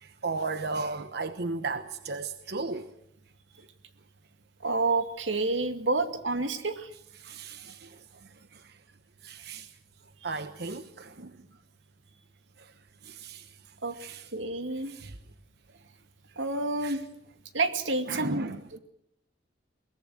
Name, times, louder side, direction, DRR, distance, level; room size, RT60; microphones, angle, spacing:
voice 1, 0.0-2.9 7.2-8.8 9.2-9.7 10.2-11.4 12.6-12.7 13.0-13.5 13.9-14.3 14.8-15.2 16.8-17.0 18.1-18.6, right 3 dB, 60° right, 1.0 m, -36 dB
voice 2, 4.6-6.9 13.8-14.0 14.3-14.9 16.4-17.0 17.5-18.8, right 3 dB, 90° right, 2.3 m, -29 dB
22.5 x 19.5 x 7.8 m
head